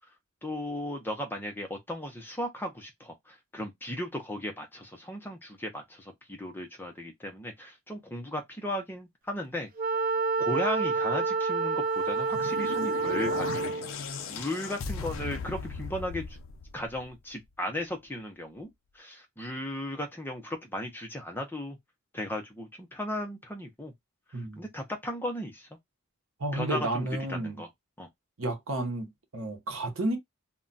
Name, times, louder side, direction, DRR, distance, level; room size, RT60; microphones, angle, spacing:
voice 1, 0.4-9.7 10.4-13.8 14.3-16.4 16.7-18.7 18.9-21.8 22.1-23.9 24.3-25.7 26.5-27.7 28.0-28.1, left 1 dB, 10° left, 0.6 m, -36 dB
Wind instrument woodwind instrument, 9.8-13.9, right 4 dB, 40° right, 0.3 m, -28 dB
sound 1, 11.9-17.3, left 5 dB, 70° left, 0.5 m, -38 dB
voice 2, 24.3-24.6 26.4-27.6 28.4-30.2, right 2 dB, 70° right, 0.8 m, -32 dB
2.3 x 2.2 x 3.8 m
head